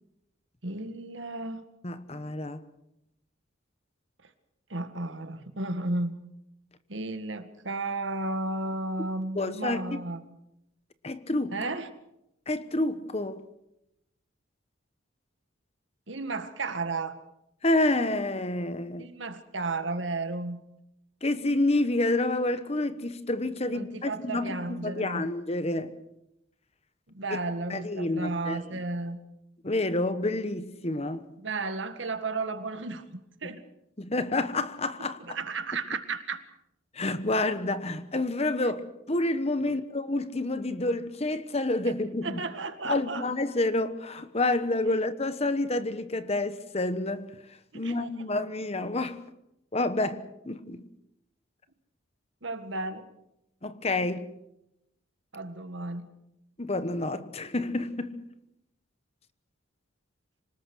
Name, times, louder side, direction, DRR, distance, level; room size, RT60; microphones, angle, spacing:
voice 1, 0.6-1.6 4.7-6.2 6.9-10.2 11.5-11.9 16.1-17.1 19.0-20.6 23.7-25.3 27.1-29.2 31.4-33.0 33.4-33.6 35.3-36.4 39.7-39.8 42.2-43.2 47.7-47.9 52.4-53.0 55.3-56.1, right 3 dB, 70° right, 1.8 m, -33 dB
voice 2, 1.8-2.6 9.3-10.0 11.0-11.6 12.5-13.4 17.6-19.1 21.2-26.0 27.3-27.4 27.7-28.8 29.6-31.2 33.4-33.5 34.0-35.4 36.9-42.4 42.8-47.3 47.7-49.2 49.7-50.8 53.6-54.3 56.6-58.2, left 2 dB, 30° left, 1.1 m, -29 dB
26.5 x 19.5 x 6.3 m
head